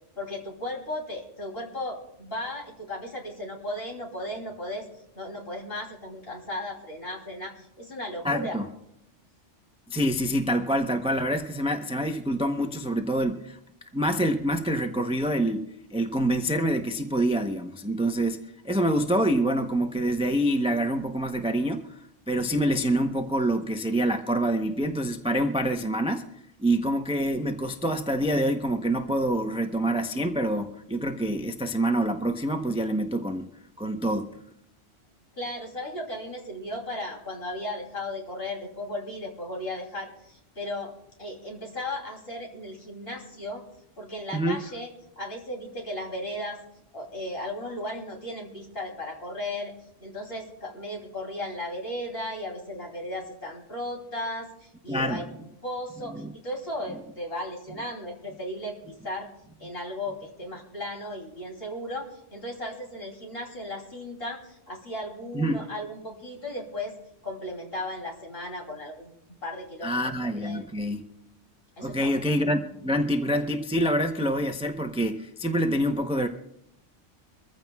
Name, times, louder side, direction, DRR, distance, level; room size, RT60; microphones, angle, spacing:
voice 1, 0.2-4.9 5.1-8.5 35.4-40.9 41.2-43.6 44.0-44.9 45.2-46.6 46.9-49.7 50.0-59.3 59.6-66.9 67.2-69.1 69.4-70.0 70.3-70.7 71.8-72.2, left 1 dB, 50° left, 0 dB, 3.3 m, -36 dB
voice 2, 8.2-8.7 9.9-13.6 13.9-21.9 22.3-26.3 26.6-33.5 33.8-34.3 44.3-44.6 54.9-55.2 56.2-56.3 65.3-65.6 69.8-71.0 71.8-76.3, right 1 dB, 5° right, 5 dB, 0.6 m, -26 dB
24.0 x 15.0 x 2.3 m, 0.79 s
omnidirectional pair, 1.2 m